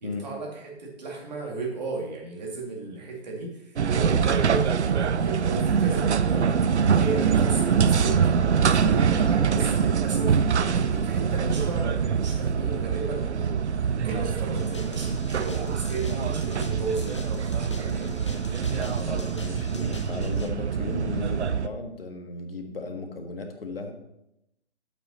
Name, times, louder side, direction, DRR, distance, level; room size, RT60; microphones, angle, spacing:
voice 1, 0.0-6.6 6.9-8.2 8.7-13.6 14.0-18.1, right 3 dB, 40° right, -1 dB, 2.4 m, -34 dB
sound 1, 3.8-21.7, right 6 dB, 75° right, 0.7 m, -24 dB
sound 2, 14.6-20.5, left 3 dB, 25° left, 0.6 m, -42 dB
voice 2, 18.5-23.9, left 3 dB, 55° left, 4 dB, 1.7 m, -36 dB
8.5 x 8.1 x 4.2 m, 0.84 s
hypercardioid pair, 170°, 34 cm